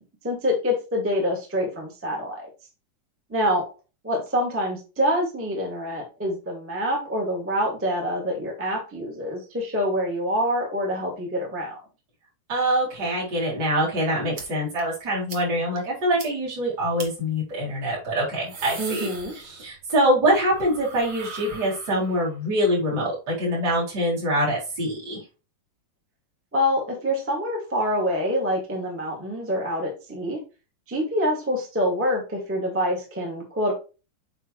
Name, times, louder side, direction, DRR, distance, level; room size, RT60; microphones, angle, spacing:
voice 1, 0.2-2.5 3.3-3.6 4.0-11.8 18.8-19.3 26.5-30.4 30.9-33.7, equal, 5° right, -1 dB, 1.0 m, -26 dB
voice 2, 12.5-25.2, equal, 25° right, -8 dB, 4.3 m, -24 dB
sound 1, 14.3-14.4 14.8-14.9 15.3-15.4 15.8-15.9 16.2-16.3 17.0-17.1 18.2-19.9 20.2-22.3, right 4 dB, 70° right, 1.2 m, -39 dB
7.9 x 5.6 x 3.2 m, 0.32 s
omnidirectional pair, 4.8 m